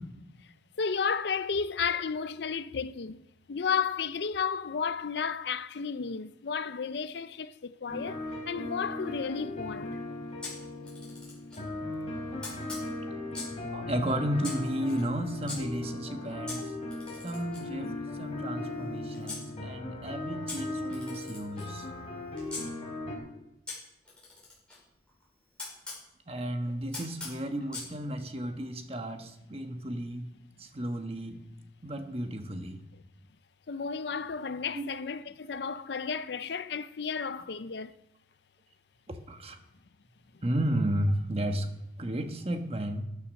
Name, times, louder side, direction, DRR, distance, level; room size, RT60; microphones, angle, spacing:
voice 1, 0.8-3.2 3.5-10.0 33.7-38.0, left 6 dB, 65° left, 0.5 m, -33 dB
sound 1, 7.9-23.2, left 2 dB, 35° left, 4.0 m, -38 dB
Camera, 10.4-11.7 12.4-13.6 14.4-15.6 16.5-19.4 20.5-22.6 23.7-26.0 26.9-27.9, left 3 dB, 5° left, 6.3 m, -43 dB
voice 2, 13.7-16.7 17.2-21.9 26.3-30.3 30.6-31.4 31.8-32.8 34.7-34.9 39.1-39.6 40.4-41.7 42.0-43.1, right 1 dB, 30° right, 1.2 m, -33 dB
13.0 x 9.6 x 6.5 m
head